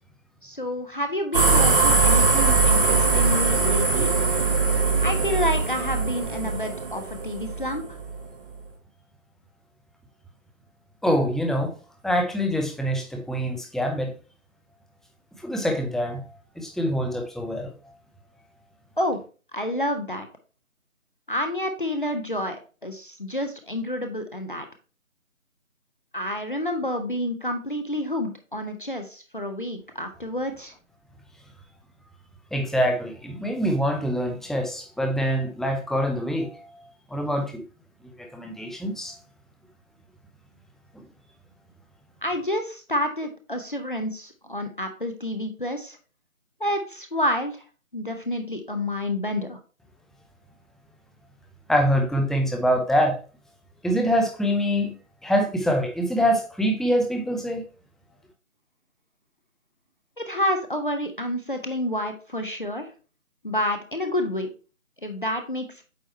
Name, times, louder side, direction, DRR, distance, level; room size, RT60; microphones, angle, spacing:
voice 1, 0.4-4.1 5.0-8.0 19.0-19.2 19.5-20.3 21.3-22.6 22.8-24.6 26.1-30.7 42.2-46.0 46.6-47.5 47.9-49.6 60.2-62.9 63.4-64.5 65.0-65.8, left 1 dB, 40° left, 0.6 m, -29 dB
sound 1, 1.3-8.2, right 4 dB, 40° right, 1.5 m, -21 dB
voice 2, 11.0-11.7 12.0-14.1 15.4-16.3 16.6-17.7 32.5-37.6 38.2-39.2 40.9-41.0 51.7-53.2 53.8-55.0 55.2-57.6, equal, ahead, 0.4 m, -25 dB
8.5 x 2.9 x 4.3 m
figure-of-eight pair, 165°, 42 cm